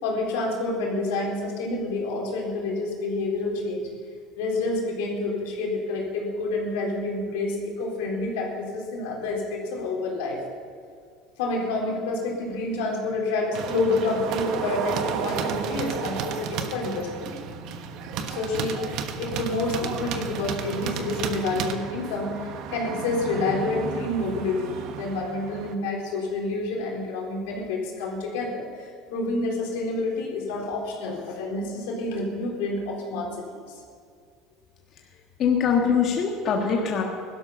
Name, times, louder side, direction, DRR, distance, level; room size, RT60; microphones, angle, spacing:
voice 1, 0.0-3.9 4.4-10.5 11.4-17.4 18.2-22.3 22.7-33.6, left 2 dB, 90° left, -2 dB, 3.9 m, -28 dB
sound 1, 13.5-25.7, right 6 dB, 60° right, 1.2 m, -32 dB
voice 2, 35.4-37.0, left 6 dB, 45° left, 1 dB, 1.5 m, -22 dB
16.5 x 12.5 x 5.6 m, 2.1 s
supercardioid pair, 125°, 0 cm